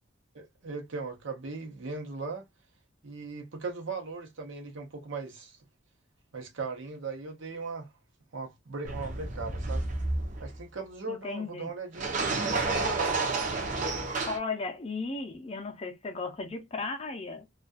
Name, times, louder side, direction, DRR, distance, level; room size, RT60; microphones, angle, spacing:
voice 1, 0.3-2.5 3.0-5.6 6.3-7.9 8.3-9.8 10.4-13.2, right 4 dB, 75° right, 0.8 m, -38 dB
sound 1, 8.8-10.6 11.9-14.4, right 3 dB, 40° right, 0.6 m, -30 dB
voice 2, 11.1-11.7 14.3-17.5, left 3 dB, 30° left, 0.5 m, -35 dB
2.3 x 2.2 x 2.4 m
head